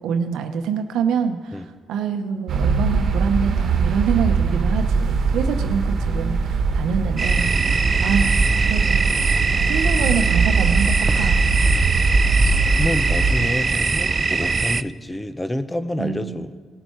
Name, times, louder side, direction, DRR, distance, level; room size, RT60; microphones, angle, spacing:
voice 1, 0.0-7.5 8.0-8.3 8.7-9.1 9.7-11.4 16.0-16.5, right 6 dB, 85° right, 8 dB, 0.8 m, -25 dB
sound 1, 2.5-13.4, right 4 dB, 60° right, 1.2 m, -21 dB
sound 2, 7.2-14.8, right 4 dB, 35° right, 0.3 m, -22 dB
voice 2, 11.7-12.1 12.8-16.5, left 1 dB, 10° left, 11 dB, 0.7 m, -28 dB
18.0 x 7.2 x 4.5 m, 1.5 s
cardioid pair, 90°, 0 cm